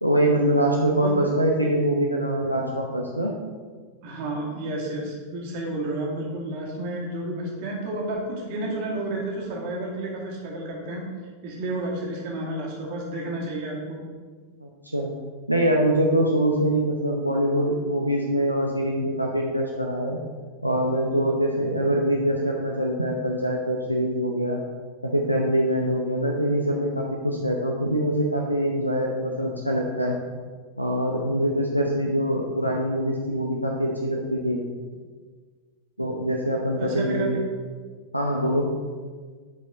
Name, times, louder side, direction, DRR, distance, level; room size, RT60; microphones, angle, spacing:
voice 1, 0.0-3.3 14.6-15.1 15.5-20.2 20.6-24.6 25.0-30.2 30.8-34.6 36.0-37.4 38.1-38.7, equal, 90° right, -1 dB, 0.8 m, -24 dB
voice 2, 4.0-11.1 11.4-14.0 36.8-37.4, right 2 dB, 50° right, -2 dB, 2.3 m, -31 dB
10.5 x 5.2 x 4.0 m, 1.5 s
figure-of-eight pair, 90°, 0 cm